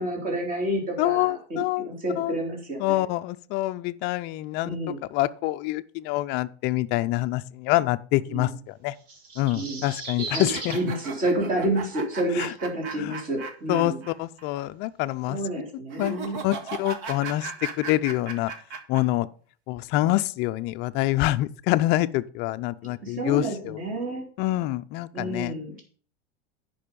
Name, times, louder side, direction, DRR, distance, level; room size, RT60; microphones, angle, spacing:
voice 1, 0.0-3.0 4.6-5.0 8.3-8.5 9.5-9.9 10.3-14.0 15.3-16.4 22.8-24.2 25.1-25.8, right 1 dB, 25° right, 3.1 m, -29 dB
voice 2, 1.0-1.9 2.2-2.4 2.8-8.9 9.4-10.9 12.4-12.5 13.0-13.2 13.7-15.4 16.0-17.5 17.8-18.5 18.9-19.3 19.7-23.8 24.4-25.5, left 17 dB, 35° left, 0.4 m, -26 dB
sound 1, 9.0-10.8 12.2-12.3, right 3 dB, 80° right, 3.1 m, -36 dB
sound 2, 10.4-14.1 14.4-14.5 15.9-19.0, right 5 dB, 55° right, 1.7 m, -36 dB
10.0 x 5.5 x 5.2 m
supercardioid pair, 140°, 31 cm